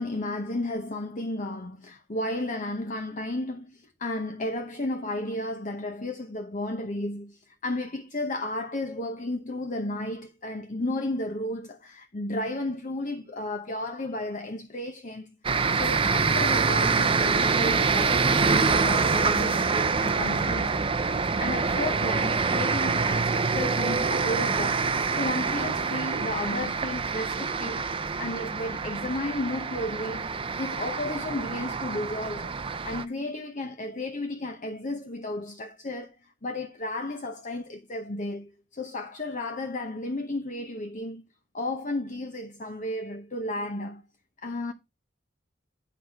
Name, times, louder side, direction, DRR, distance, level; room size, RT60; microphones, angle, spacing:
voice 1, 0.0-15.3 15.7-20.9 21.4-24.8 25.1-27.9 28.2-36.1 36.4-41.2 41.5-44.0 44.4-44.7, left 1 dB, 45° left, 0.9 m, -33 dB
sound 1, 15.4-33.0, right 4 dB, 30° right, 0.5 m, -26 dB
sound 2, 18.5-26.3, right 2 dB, 70° right, 1.0 m, -43 dB
9.9 x 4.1 x 4.5 m
head